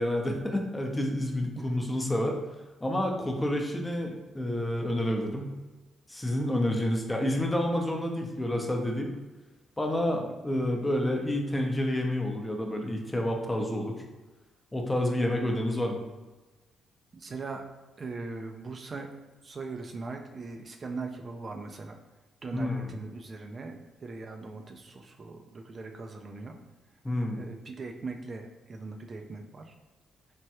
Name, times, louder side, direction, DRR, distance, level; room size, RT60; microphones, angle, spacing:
voice 1, 0.0-2.4 2.8-5.5 6.1-9.1 9.8-14.0 14.7-16.0 22.5-22.9 27.0-27.4, left 1 dB, 15° left, 2 dB, 0.6 m, -29 dB
voice 2, 10.1-10.4 17.1-17.6 18.0-19.1 19.4-22.0 22.4-26.6 27.4-29.7, right 3 dB, 45° right, 3 dB, 0.3 m, -40 dB
3.3 x 2.2 x 2.8 m, 1.2 s
supercardioid pair, 55°, 0 cm